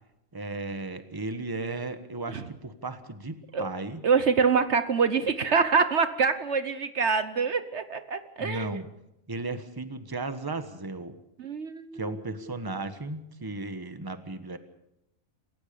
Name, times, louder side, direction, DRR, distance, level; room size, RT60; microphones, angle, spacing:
voice 1, 0.3-4.0 8.4-8.9 9.3-11.1 11.9-14.6, right 2 dB, 15° right, 10 dB, 1.3 m, -35 dB
voice 2, 4.0-8.8 11.4-12.2, right 5 dB, 60° right, 11 dB, 1.3 m, -25 dB
27.5 x 15.5 x 7.0 m, 0.86 s
omnidirectional pair, 1.3 m